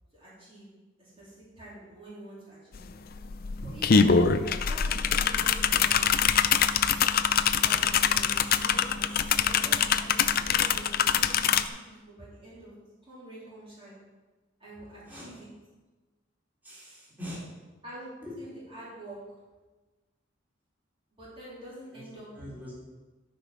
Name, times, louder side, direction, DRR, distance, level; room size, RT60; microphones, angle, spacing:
voice 1, 0.1-0.7 1.0-2.9 3.6-4.4 4.7-6.1 7.6-14.0 14.6-15.5 17.8-18.1 18.4-19.2 21.1-22.3, right 1 dB, 30° right, -8 dB, 3.5 m, -46 dB
sound 1, 2.7-2.8 3.1-11.7, left 7 dB, 50° left, 0.5 m, -24 dB
voice 2, 15.0-15.4 16.6-17.4 18.2-18.4 21.9-22.0 22.4-22.8, equal, 10° right, -8 dB, 3.7 m, -42 dB
13.5 x 5.4 x 5.8 m, 1.2 s
head